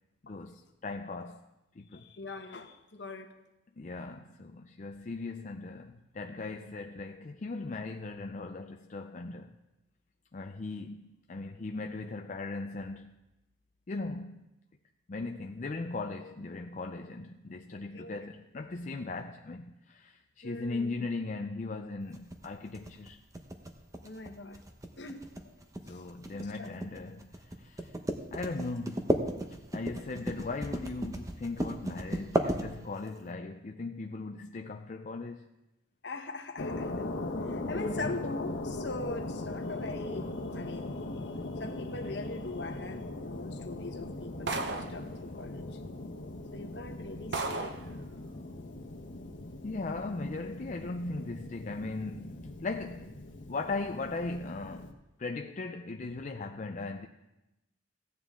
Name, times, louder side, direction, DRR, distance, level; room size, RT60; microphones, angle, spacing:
voice 1, 0.2-1.5 1.8-2.1 3.8-9.5 10.3-13.2 13.9-14.4 15.1-23.2 25.9-28.0 28.3-29.2 29.7-35.5 37.6-38.2 49.6-53.2 53.5-57.1, left 3 dB, 40° left, 0.4 m, -38 dB
voice 2, 1.9-3.3 16.4-16.5 17.9-18.3 20.4-21.1 24.0-24.6 25.0-25.2 25.9-26.0 26.3-26.7 36.0-36.9 37.5-45.6 46.5-47.8, left 2 dB, 65° left, 1.1 m, -41 dB
sound 1, 22.1-33.2, right 1 dB, 15° right, 0.8 m, -34 dB
sound 2, 36.6-54.9, left 2 dB, 85° left, 1.1 m, -40 dB
sound 3, 44.5-45.0 46.1-46.2 46.7-46.8 47.3-47.9, right 3 dB, 65° right, 0.8 m, -34 dB
16.0 x 9.5 x 3.7 m
head